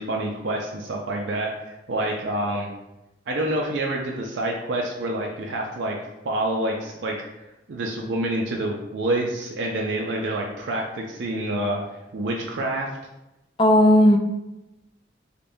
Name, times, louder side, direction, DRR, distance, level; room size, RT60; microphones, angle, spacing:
voice 1, 0.0-2.7 3.3-6.0 6.2-7.2 7.7-11.8 12.1-12.9, right 1 dB, 70° right, -1 dB, 0.4 m, -27 dB
voice 2, 13.6-14.2, left 1 dB, 30° left, 3 dB, 0.4 m, -15 dB
5.1 x 2.2 x 2.6 m, 0.96 s
head